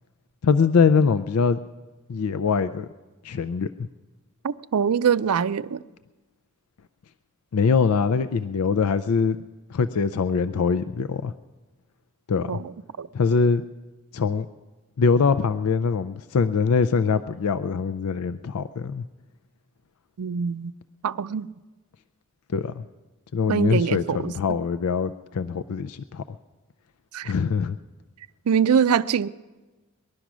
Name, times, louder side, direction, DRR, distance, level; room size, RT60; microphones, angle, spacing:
voice 1, 0.4-1.6 2.1-2.9 3.2-3.7 7.5-9.4 9.7-11.3 12.3-12.6 13.1-13.6 14.1-14.5 15.0-19.0 22.5-22.8 23.3-26.2 27.2-27.8, left 5 dB, 80° left, 0.5 m, -23 dB
voice 2, 4.4-5.8 12.5-12.7 13.0-13.1 20.2-20.7 21.0-21.5 23.5-24.3 27.1-27.3 28.5-29.3, right 7 dB, 90° right, 0.5 m, -23 dB
20.0 x 11.5 x 6.1 m
head